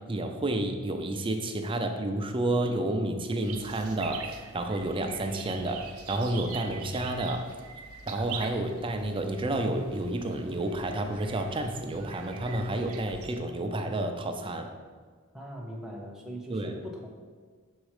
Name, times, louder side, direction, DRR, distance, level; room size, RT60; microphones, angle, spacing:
voice 1, 0.0-7.5 8.1-14.7 16.5-16.7, right 1 dB, 25° right, 5 dB, 0.5 m, -30 dB
sound 1, 3.4-13.4, right 6 dB, 90° right, 0.7 m, -44 dB
voice 2, 15.3-17.1, equal, 5° right, -2 dB, 1.0 m, -40 dB
6.3 x 4.0 x 4.9 m, 1.6 s
head